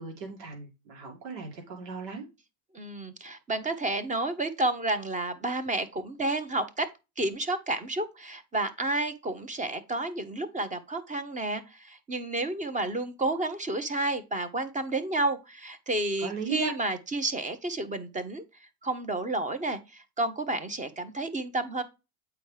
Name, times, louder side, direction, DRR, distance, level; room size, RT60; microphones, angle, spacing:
voice 1, 0.0-2.3 16.2-16.7, right 4 dB, 80° right, 2.2 m, -36 dB
voice 2, 2.7-6.9 7.2-18.4 18.8-21.8, right 2 dB, 15° right, 0.9 m, -31 dB
8.3 x 4.7 x 3.3 m
hypercardioid pair, 105°, 49 cm